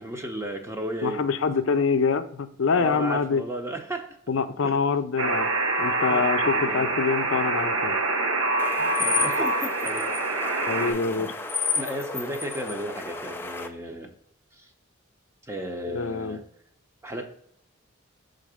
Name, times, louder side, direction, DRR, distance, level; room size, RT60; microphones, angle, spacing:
voice 1, 0.0-1.3 2.8-4.2 4.6-4.8 6.1-6.9 8.8-11.4 11.7-14.1 14.5-14.7 15.4-16.4 17.0-17.3, right 1 dB, 15° right, 3 dB, 0.7 m, -34 dB
voice 2, 1.0-3.4 4.3-5.5 5.8-7.9 10.7-11.3 15.9-16.4, left 5 dB, 70° left, 10 dB, 0.5 m, -25 dB
Alarm, 5.2-10.9, right 2 dB, 85° right, 1.0 m, -25 dB
sound 1, 8.6-13.7, left 4 dB, 10° left, 0.4 m, -32 dB
6.3 x 3.8 x 4.9 m, 0.67 s
head